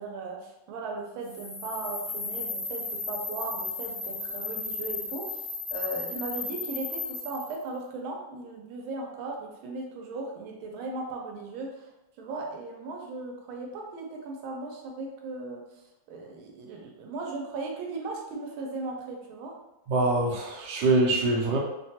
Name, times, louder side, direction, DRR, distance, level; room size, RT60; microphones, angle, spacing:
voice 1, 0.0-11.9 12.2-19.5, right 3 dB, 90° right, 0 dB, 1.4 m, -37 dB
sound 1, 1.2-7.6, left 4 dB, 35° left, 0.7 m, -35 dB
voice 2, 19.9-21.6, right 2 dB, 70° right, -2 dB, 1.1 m, -24 dB
3.3 x 2.2 x 2.7 m, 0.95 s
omnidirectional pair, 2.2 m